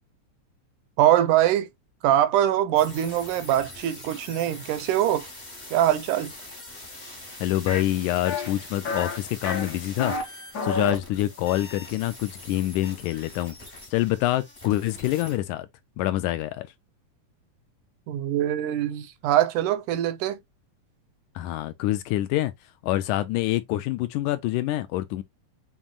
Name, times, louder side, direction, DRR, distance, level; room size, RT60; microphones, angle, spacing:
voice 1, 1.0-1.7 2.0-5.3 5.7-6.3 18.1-20.4, right 12 dB, 85° right, 2.1 m, -23 dB
sound 1, 2.7-15.4, left 1 dB, 40° left, 0.6 m, -43 dB
voice 2, 7.4-13.6 13.9-15.7 16.0-16.7 21.4-22.5 22.8-25.2, left 15 dB, 80° left, 1.9 m, -26 dB
sound 2, 7.7-7.8 8.2-8.5 8.8-9.2 9.4-10.2 10.5-11.0, left 3 dB, 60° left, 1.0 m, -29 dB
7.3 x 3.0 x 2.3 m
omnidirectional pair, 3.7 m